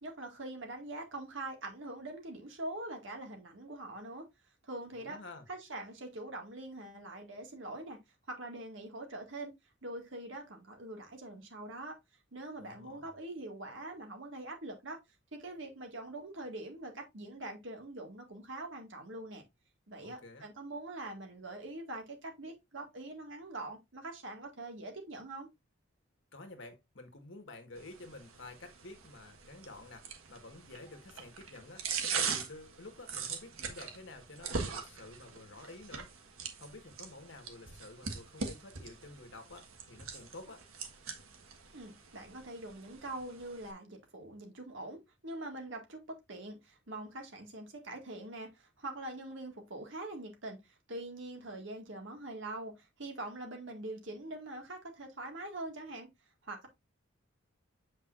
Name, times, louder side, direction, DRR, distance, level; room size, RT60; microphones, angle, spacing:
voice 1, 0.0-4.3 4.6-5.2 5.5-8.0 8.3-9.5 9.8-12.0 12.3-15.0 15.3-19.4 19.9-25.5 41.7-56.1 56.4-56.7, right 2 dB, 65° right, 2.0 m, -43 dB
voice 2, 5.0-5.5 12.6-13.1 20.0-20.5 26.3-36.2 36.6-40.6, left 2 dB, 60° left, 1.5 m, -51 dB
sound 1, 27.8-43.7, right 5 dB, 85° right, 1.4 m, -42 dB
7.7 x 5.3 x 2.5 m
head